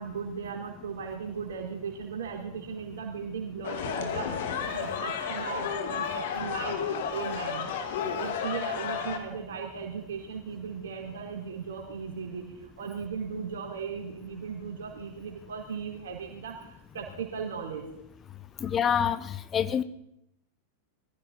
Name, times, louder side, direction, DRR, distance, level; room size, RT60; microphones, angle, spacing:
voice 1, 0.0-6.8 7.1-7.7 8.0-17.8 18.6-18.8, right 6 dB, 60° right, 1 dB, 4.3 m, -37 dB
sound 1, 3.6-9.2, left 7 dB, 55° left, 2.1 m, -32 dB
voice 2, 18.6-19.8, left 8 dB, 25° left, 13 dB, 0.8 m, -27 dB
22.0 x 15.5 x 4.2 m, 0.79 s
figure-of-eight pair, 90°, 0 cm